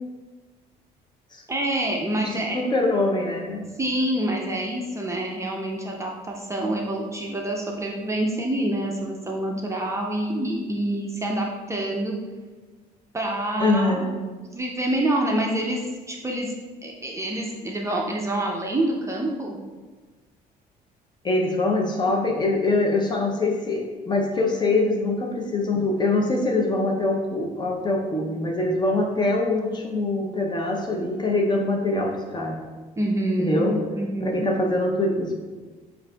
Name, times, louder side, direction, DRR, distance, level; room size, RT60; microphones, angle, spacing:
voice 1, 1.5-2.6 3.8-12.1 13.1-14.1 14.4-15.8 16.1-16.5 16.8-19.6 33.0-33.7 33.9-34.5, right 1 dB, 15° right, -1 dB, 0.5 m, -27 dB
voice 2, 2.2-3.7 13.6-14.2 21.2-32.6 33.4-33.8 34.2-35.4, left 2 dB, 25° left, 1 dB, 0.6 m, -24 dB
7.6 x 2.5 x 2.3 m, 1.3 s
cardioid pair, 110°, 17 cm